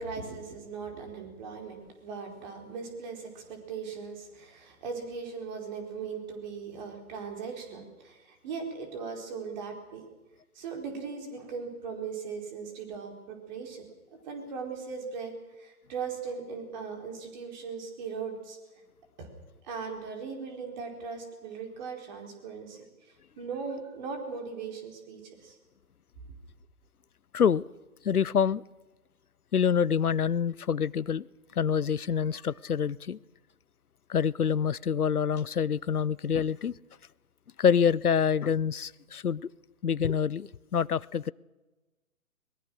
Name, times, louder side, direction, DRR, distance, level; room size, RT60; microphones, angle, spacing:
voice 1, 0.0-10.0 10.5-13.9 14.3-18.6 19.2-19.3 19.6-25.6, right 5 dB, 30° right, 4.6 m, -39 dB
voice 2, 27.3-27.7 28.0-28.6 29.5-31.3 31.6-33.2 34.1-36.7 37.6-39.4 39.8-41.3, left 7 dB, 80° left, 0.7 m, -26 dB
22.0 x 21.0 x 6.4 m
figure-of-eight pair, 135°, 44 cm